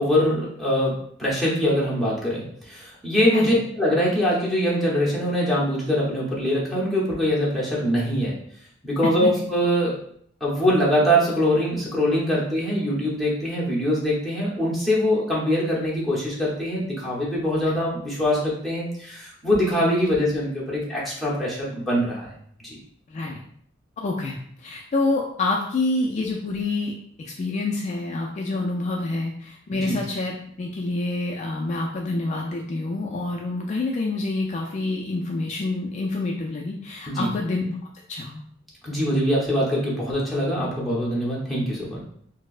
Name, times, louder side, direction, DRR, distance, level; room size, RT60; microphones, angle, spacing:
voice 1, 0.0-8.4 8.8-10.0 10.4-22.3 22.6-22.8 29.8-30.0 37.1-37.3 38.8-42.0, equal, ahead, -6 dB, 0.9 m, -23 dB
voice 2, 23.1-23.4 24.0-26.9 27.2-37.8 38.1-38.4, left 2 dB, 40° left, 0 dB, 0.3 m, -27 dB
4.2 x 2.0 x 2.4 m, 0.64 s
head